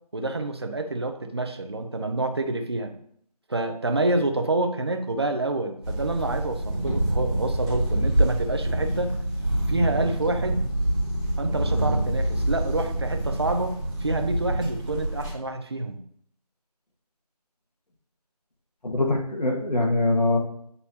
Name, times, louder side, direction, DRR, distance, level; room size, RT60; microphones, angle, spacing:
voice 1, 0.1-2.9 3.5-9.1 9.7-10.7 11.4-16.0, right 2 dB, 40° right, 6 dB, 0.6 m, -27 dB
sound 1, 5.8-15.3, right 1 dB, 5° left, 0.7 m, -26 dB
voice 2, 18.8-20.4, left 2 dB, 85° left, 0 dB, 1.8 m, -23 dB
8.5 x 4.1 x 2.8 m, 0.68 s
figure-of-eight pair, 170°, 20 cm